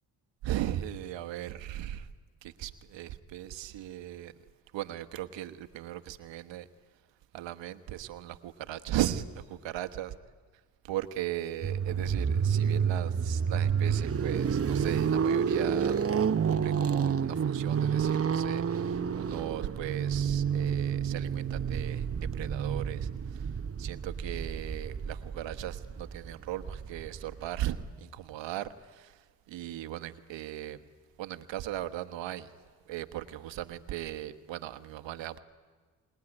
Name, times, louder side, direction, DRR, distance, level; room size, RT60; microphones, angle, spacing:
voice 1, 0.4-2.1 2.4-4.3 4.7-6.7 7.3-10.1 10.8-16.0 16.4-23.5 23.8-30.8 31.2-32.5 32.9-35.4, right 13 dB, 80° right, 10 dB, 1.3 m, -37 dB
sound 1, 11.6-27.8, right 7 dB, 30° right, 0.9 m, -29 dB
26.0 x 20.0 x 10.0 m, 1.4 s
supercardioid pair, 55°, 44 cm